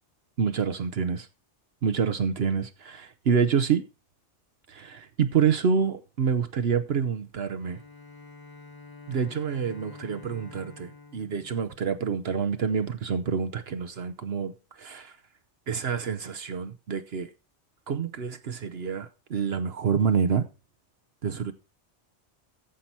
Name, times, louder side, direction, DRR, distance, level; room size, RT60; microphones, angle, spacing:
voice 1, 0.4-1.3 1.8-3.8 4.7-7.8 9.1-15.2 15.7-17.3 17.9-20.5 21.2-21.5, right 6 dB, 60° right, 1.0 m, -27 dB
Bowed string instrument, 7.6-12.4, left 3 dB, 20° left, 0.9 m, -48 dB
14.5 x 5.7 x 4.3 m
omnidirectional pair, 1.2 m